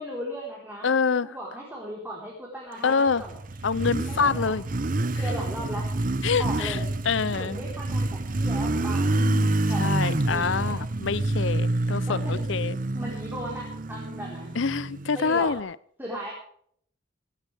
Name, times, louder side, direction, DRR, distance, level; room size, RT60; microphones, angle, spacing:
voice 1, 0.0-0.9 1.2-3.4 4.1-4.5 5.2-5.9 6.4-6.9 7.3-9.2 9.7-10.8 12.1-12.5 12.9-14.5 15.1-15.6 16.0-16.3, equal, 10° right, -4 dB, 4.3 m, -37 dB
voice 2, 0.8-1.3 2.8-3.2 3.6-4.6 6.2-6.8 7.1-7.6 9.1-12.8 14.6-15.7, left 5 dB, 70° left, 19 dB, 0.6 m, -26 dB
Motorcycle, 2.9-15.6, right 2 dB, 40° right, 0.8 m, -28 dB
17.5 x 16.0 x 3.5 m, 0.63 s
head